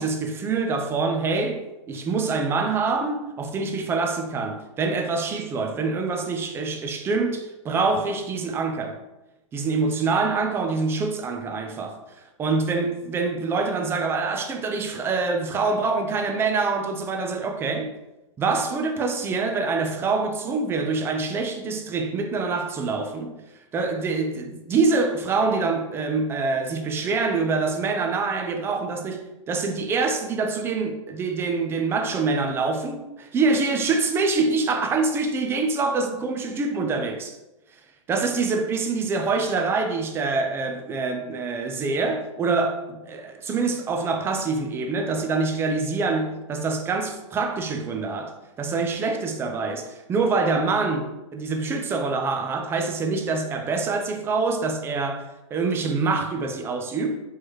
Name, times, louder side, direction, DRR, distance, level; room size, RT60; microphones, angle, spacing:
voice 1, 0.0-1.6 1.9-9.0 9.5-12.0 12.4-17.9 18.4-23.4 23.7-37.4 38.1-57.2, right 4 dB, 15° right, 0.4 m, -25 dB
4.4 x 3.1 x 3.1 m
hypercardioid pair, 135°, 16 cm